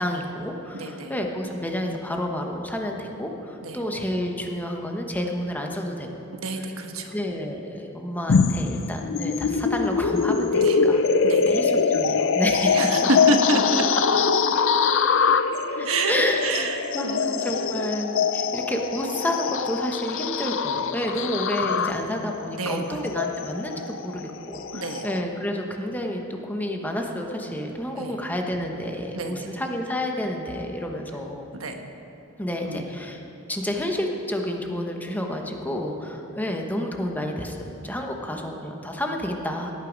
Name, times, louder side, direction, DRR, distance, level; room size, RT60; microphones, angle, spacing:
voice 1, 0.0-6.1 6.6-6.7 7.1-13.1 15.7-31.5 32.4-33.2 33.5-37.6 37.8-39.7, left 1 dB, 10° left, 2 dB, 1.1 m, -30 dB
voice 2, 0.7-1.1 3.6-3.8 6.3-7.1 10.6-10.8 11.2-11.6 12.6-13.8 15.8-17.2 21.1-21.3 22.5-23.0 24.7-25.0 28.0-28.1 29.1-29.4 31.5-31.8 32.7-32.8, right 2 dB, 90° right, 4 dB, 1.2 m, -28 dB
sound 1, 8.3-25.2, left 5 dB, 65° left, 0.5 m, -23 dB
17.0 x 9.4 x 5.2 m, 2.9 s
head